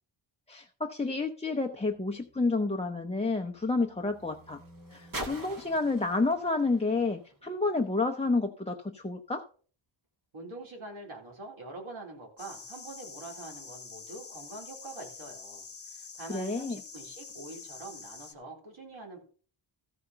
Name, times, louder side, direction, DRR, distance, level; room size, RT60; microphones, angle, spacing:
voice 1, 0.5-4.6 4.9-9.4 16.3-16.8, left 3 dB, 15° left, 2 dB, 0.6 m, -30 dB
sound 1, 1.6-8.1 8.9-9.0, right 1 dB, 40° right, 2.1 m, -46 dB
voice 2, 10.3-15.7 15.9-19.2, right 2 dB, 75° right, 0 dB, 3.7 m, -45 dB
sound 2, 12.4-18.3, left 5 dB, 30° left, 0.9 m, -46 dB
14.0 x 4.9 x 5.5 m, 0.42 s
wide cardioid pair, 135°, 49 cm